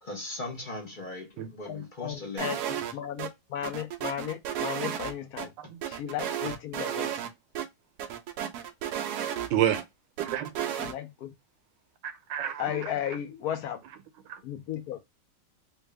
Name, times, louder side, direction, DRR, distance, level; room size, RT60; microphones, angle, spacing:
voice 1, 0.0-2.6, left 2 dB, 50° left, 0.6 m, -39 dB
voice 2, 1.7-2.6 2.9-5.5 5.9-7.2 10.8-11.3 12.6-13.8 14.4-15.0, left 10 dB, 70° left, 1.0 m, -35 dB
sound 1, 2.4-2.9 3.2-3.3 3.6-5.5 5.8-7.3 7.6-7.7 8.0-9.8 10.2-10.9, right 10 dB, 75° right, 1.0 m, -33 dB
voice 3, 9.5-9.8 10.2-10.7 12.0-12.8 14.3-14.4, right 11 dB, 90° right, 1.3 m, -29 dB
3.3 x 2.3 x 3.2 m
omnidirectional pair, 1.9 m